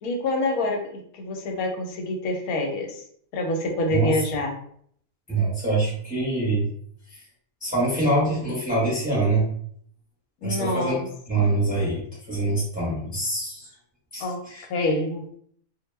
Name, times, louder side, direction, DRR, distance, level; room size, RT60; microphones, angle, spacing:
voice 1, 0.0-3.0 3.3-4.5 10.4-11.1 14.2-14.4 14.7-15.2, left 2 dB, 80° left, 2 dB, 1.1 m, -26 dB
voice 2, 5.3-6.7 7.1-7.2 7.6-9.5 10.4-11.0 11.3-13.7 14.1-14.7, right 2 dB, 5° right, -6 dB, 0.7 m, -24 dB
2.3 x 2.2 x 3.2 m, 0.63 s
omnidirectional pair, 1.5 m